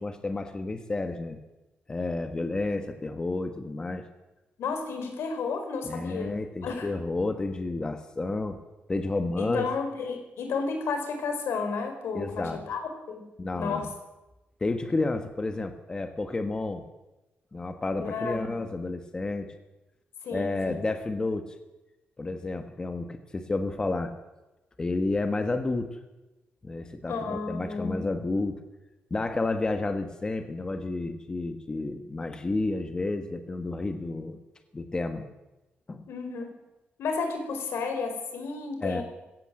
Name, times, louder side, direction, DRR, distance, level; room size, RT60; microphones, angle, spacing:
voice 1, 0.0-1.4 1.9-4.0 5.8-8.6 8.9-9.6 12.1-12.6 13.4-13.9 14.6-16.9 17.5-19.5 20.3-21.5 22.2-24.1 24.8-26.0 26.6-28.6 29.1-34.4 34.7-35.2 35.9-36.1 38.8-39.0, left 2 dB, 20° left, 7 dB, 1.4 m, -31 dB
voice 2, 4.6-6.9 9.4-13.3 13.5-13.9 18.0-18.6 20.2-20.9 27.1-28.1 36.1-36.6 37.0-39.0, left 4 dB, 85° left, 6 dB, 5.0 m, -32 dB
20.5 x 17.0 x 7.7 m, 1.0 s
wide cardioid pair, 170°, 4 cm